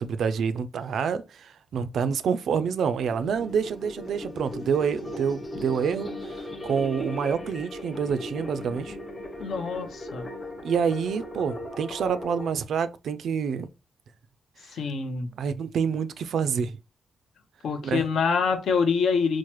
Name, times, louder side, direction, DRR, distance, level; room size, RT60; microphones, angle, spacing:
voice 1, 0.0-9.0 10.6-13.7 15.4-16.8 17.8-18.0, right 6 dB, 75° right, 0.3 m, -27 dB
sound 1, 2.9-12.5, left 1 dB, 25° left, 0.5 m, -38 dB
voice 2, 9.4-10.3 14.6-15.3 17.6-19.4, left 5 dB, 70° left, 0.6 m, -26 dB
4.6 x 2.0 x 2.9 m
wide cardioid pair, 175°, 0 cm